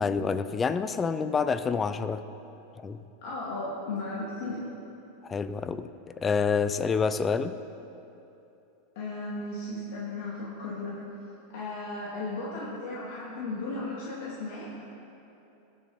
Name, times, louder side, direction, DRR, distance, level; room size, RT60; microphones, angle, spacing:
voice 1, 0.0-2.2 2.8-3.0 5.2-7.6, left 5 dB, 20° left, 12 dB, 0.4 m, -28 dB
voice 2, 3.2-4.6 9.0-10.9 11.5-14.8, left 2 dB, 60° left, -7 dB, 2.4 m, -35 dB
18.5 x 7.3 x 4.3 m, 2.8 s
supercardioid pair, 145°, 0 cm